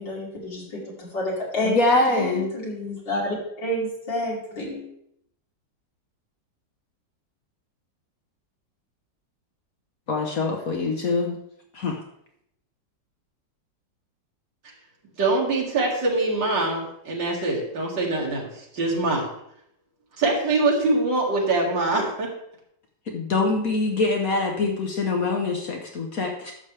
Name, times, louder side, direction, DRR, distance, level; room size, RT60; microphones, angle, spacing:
voice 1, 0.0-1.8 2.1-4.8, left 1 dB, 90° left, -5 dB, 3.5 m, -29 dB
voice 2, 1.6-2.5 10.1-11.4 11.7-12.0 23.1-26.5, left 3 dB, 55° left, 2 dB, 1.3 m, -24 dB
voice 3, 15.2-19.3 20.2-22.3, right 2 dB, 80° right, -2 dB, 2.7 m, -23 dB
11.0 x 7.2 x 3.3 m, 0.74 s
omnidirectional pair, 1.9 m